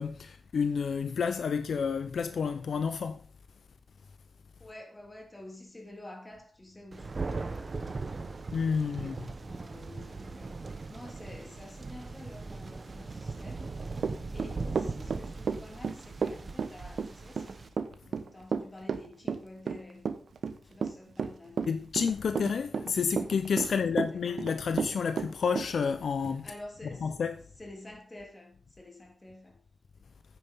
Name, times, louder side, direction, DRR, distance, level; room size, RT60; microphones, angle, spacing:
voice 1, 0.0-3.3 8.5-9.2 21.7-26.5 27.0-27.4, left 6 dB, 70° left, 0.7 m, -30 dB
voice 2, 4.6-8.1 8.8-10.6 10.9-13.8 14.1-17.7 18.0-20.1 20.6-21.7 23.6-24.4 26.4-27.2 27.6-29.6, left 1 dB, 20° left, 3.1 m, -49 dB
Thunder, 6.9-17.7, right 3 dB, 40° right, 1.1 m, -39 dB
Run / Walk footsteps, 14.0-25.7, right 5 dB, 70° right, 1.0 m, -32 dB
9.7 x 9.4 x 3.7 m
wide cardioid pair, 100°, 0 cm